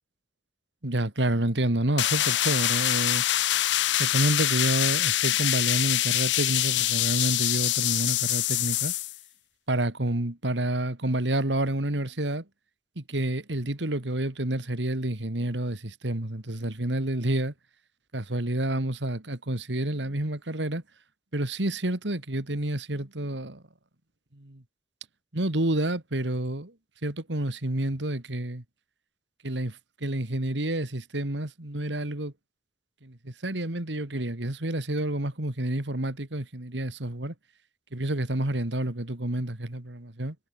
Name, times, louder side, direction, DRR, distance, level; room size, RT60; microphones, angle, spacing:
voice 1, 0.8-3.3 4.0-8.9 9.7-12.4 13.0-17.5 18.1-20.8 21.3-23.6 24.3-24.6 25.3-26.7 27.0-28.6 29.4-32.3 33.0-37.3 37.9-40.4, right 1 dB, 85° right, 2.5 m, -29 dB
sound 1, 2.0-9.2, left 14 dB, 85° left, 0.7 m, -25 dB
head